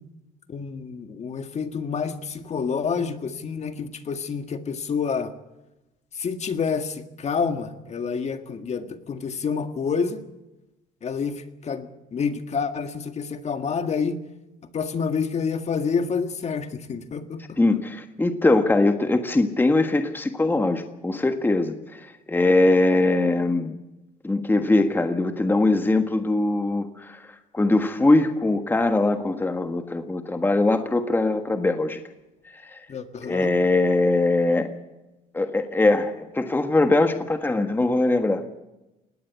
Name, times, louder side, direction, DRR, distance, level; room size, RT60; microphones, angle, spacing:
voice 1, 0.5-5.3 6.2-10.2 11.0-14.2 14.7-17.6 32.9-33.5, left 5 dB, 40° left, 8 dB, 1.8 m, -28 dB
voice 2, 17.6-23.7 24.2-27.3 27.5-32.0 32.7-32.8 33.2-34.7 35.3-38.5, left 2 dB, 10° left, 7 dB, 1.5 m, -21 dB
19.5 x 17.5 x 8.3 m, 0.98 s
cardioid pair, 110°, 17 cm